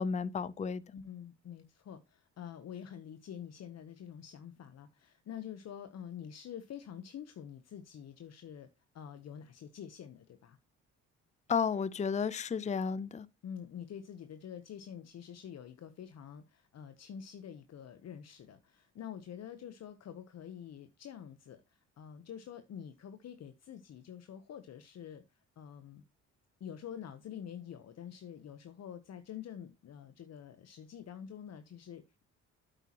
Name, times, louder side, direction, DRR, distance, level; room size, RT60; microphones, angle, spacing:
voice 1, 0.0-0.8 11.5-13.3, left 6 dB, 25° left, 0.6 m, -32 dB
voice 2, 0.9-8.7 8.9-10.6 13.4-26.0 26.6-32.2, left 9 dB, 60° left, 0.9 m, -47 dB
9.0 x 8.2 x 2.9 m
cardioid pair, 90°, 30 cm